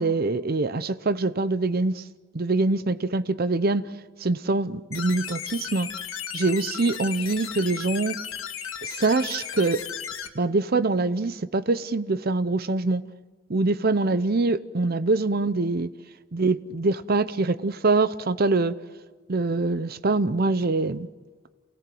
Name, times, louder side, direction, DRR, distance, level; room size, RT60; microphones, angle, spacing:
voice 1, 0.0-2.0 2.3-3.8 4.2-5.9 6.3-8.2 8.8-9.8 10.3-13.0 13.5-15.9 16.3-18.8 19.3-21.1, right 3 dB, 50° right, 13 dB, 0.7 m, -24 dB
sound 1, 4.9-10.3, left 8 dB, 85° left, 1.6 m, -35 dB
28.5 x 17.5 x 7.8 m, 1.4 s
head